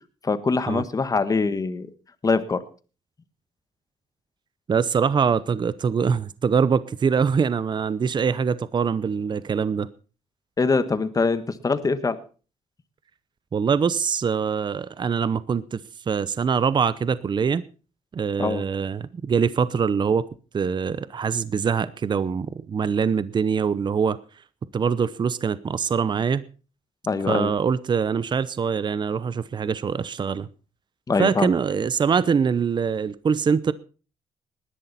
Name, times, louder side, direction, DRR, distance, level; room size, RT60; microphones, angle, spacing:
voice 1, 0.2-1.9 2.2-2.6 10.6-12.2 18.4-18.6 27.1-27.5 31.1-31.5, left 4 dB, 30° left, 12 dB, 1.4 m, -23 dB
voice 2, 4.7-9.9 13.5-15.8 16.1-17.6 18.1-20.2 20.5-24.2 24.7-26.4 27.3-30.5 31.2-33.7, right 6 dB, 40° right, 17 dB, 0.7 m, -23 dB
20.0 x 11.0 x 4.2 m, 0.36 s
cardioid pair, 95°, 12 cm